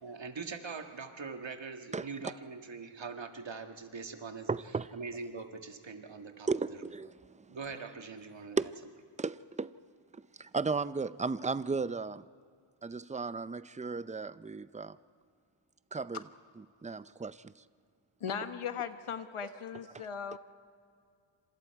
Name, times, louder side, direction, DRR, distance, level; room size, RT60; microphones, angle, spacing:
voice 1, 0.0-4.5 4.9-6.8 7.5-8.6, right 4 dB, 65° right, 5 dB, 1.8 m, -42 dB
voice 2, 4.5-4.9 6.5-7.1 8.6-8.7 9.2-9.7 10.4-12.2 12.8-15.0 15.9-16.2 16.8-17.4, right 4 dB, 15° right, 14 dB, 0.5 m, -34 dB
voice 3, 18.2-20.4, left 7 dB, 90° left, 9 dB, 1.3 m, -38 dB
28.5 x 26.5 x 4.7 m, 2.3 s
wide cardioid pair, 85°, 49 cm